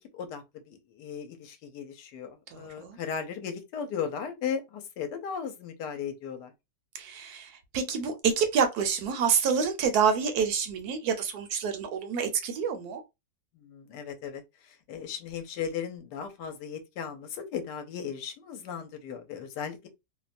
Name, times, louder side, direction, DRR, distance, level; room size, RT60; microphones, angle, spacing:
voice 1, 0.1-6.5 13.6-19.9, left 7 dB, 75° left, 1.1 m, -37 dB
voice 2, 2.5-3.0 6.9-13.0, right 6 dB, 70° right, 1.0 m, -27 dB
2.8 x 2.1 x 2.4 m
omnidirectional pair, 1.9 m